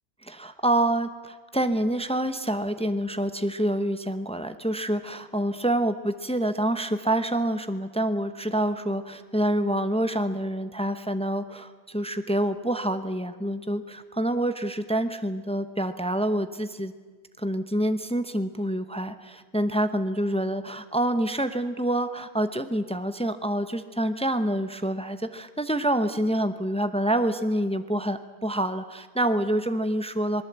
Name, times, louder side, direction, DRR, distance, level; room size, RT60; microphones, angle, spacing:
voice 1, 0.2-16.9 17.4-30.4, right 1 dB, 5° left, 10 dB, 0.7 m, -27 dB
26.5 x 19.0 x 8.1 m, 1.5 s
omnidirectional pair, 1.1 m